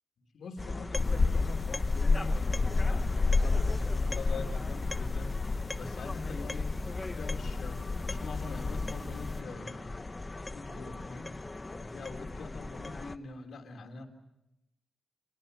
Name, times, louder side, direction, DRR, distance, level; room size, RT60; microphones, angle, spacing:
voice 1, 0.3-3.1 3.4-5.4 5.7-6.7 7.0-10.2 10.5-11.4 11.8-14.1, left 3 dB, 80° left, 5 dB, 3.4 m, -44 dB
sound 1, 0.6-13.2, left 2 dB, 25° left, 1.1 m, -40 dB
sound 2, 0.9-9.4, left 3 dB, 40° left, 1.4 m, -30 dB
29.5 x 27.0 x 6.9 m, 0.86 s
wide cardioid pair, 120°, 0 cm